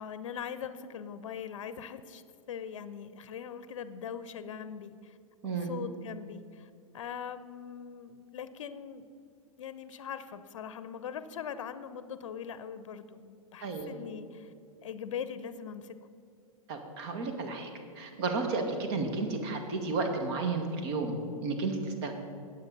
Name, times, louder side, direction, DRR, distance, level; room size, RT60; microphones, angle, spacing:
voice 1, 0.0-5.2 5.4-9.1 9.6-14.5 14.8-16.0, left 7 dB, 60° left, 13 dB, 0.7 m, -41 dB
voice 2, 16.7-17.7 17.9-21.1 21.4-22.1, right 3 dB, 45° right, 5 dB, 1.7 m, -32 dB
19.5 x 7.8 x 4.0 m, 2.5 s
figure-of-eight pair, 105°, 18 cm